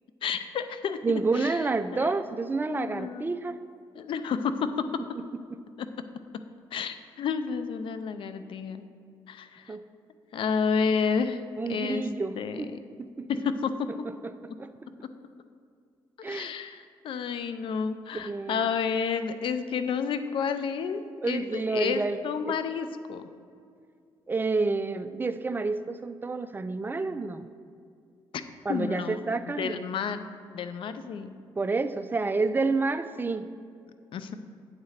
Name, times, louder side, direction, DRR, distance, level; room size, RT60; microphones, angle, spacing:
voice 1, 0.2-1.6 1.9-2.1 2.7-3.3 3.9-4.8 5.8-5.9 6.7-8.8 9.3-9.8 10.3-11.4 11.7-12.1 12.4-12.8 13.3-13.8 16.2-23.2 28.7-29.2 29.5-30.2 30.5-31.3 34.1-34.3, left 6 dB, 65° left, 10 dB, 0.5 m, -30 dB
voice 2, 1.0-3.6 9.7-9.8 11.6-12.7 13.2-13.3 14.6-14.7 16.2-16.5 18.1-18.6 21.2-22.2 22.5-22.6 24.3-27.5 28.7-29.8 31.6-33.5, right 3 dB, 20° right, 11 dB, 0.4 m, -29 dB
8.6 x 4.1 x 6.5 m, 2.3 s
cardioid pair, 85°, 9 cm